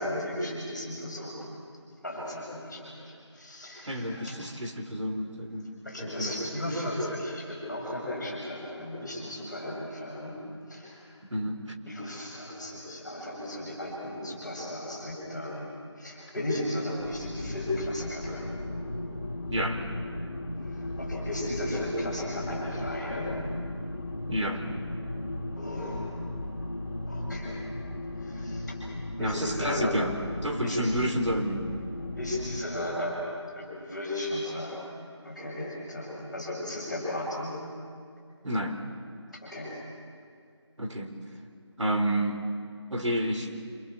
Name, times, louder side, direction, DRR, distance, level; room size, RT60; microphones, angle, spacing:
voice 1, 0.0-1.5 2.0-4.3 5.8-10.4 10.7-11.1 11.9-18.5 20.6-23.4 25.6-26.1 27.1-27.6 28.2-28.8 29.2-29.9 30.6-30.8 32.2-33.2 33.5-34.8 35.2-37.5 39.4-39.8, left 1 dB, ahead, -20 dB, 5.8 m, -35 dB
voice 2, 3.9-5.7 6.0-6.3 11.3-11.7 19.5-19.8 24.3-24.6 29.2-30.1 30.4-31.6 38.4-38.8 40.8-41.1 41.8-42.4 42.9-43.5, equal, 85° right, 4 dB, 4.1 m, -29 dB
sound 1, 17.0-32.6, left 1 dB, 25° left, 2.7 m, -36 dB
27.0 x 25.5 x 7.3 m, 2.3 s
figure-of-eight pair, 175°, 15 cm